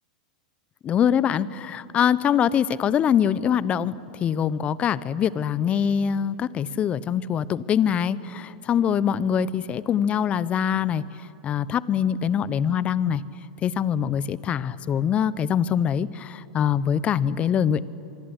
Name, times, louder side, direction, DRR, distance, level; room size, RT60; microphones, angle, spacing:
voice 1, 0.8-11.0 11.4-13.2 13.6-17.8, left 8 dB, 30° left, 18 dB, 0.9 m, -23 dB
25.0 x 23.5 x 9.9 m, 2.7 s
hypercardioid pair, 110°, 4 cm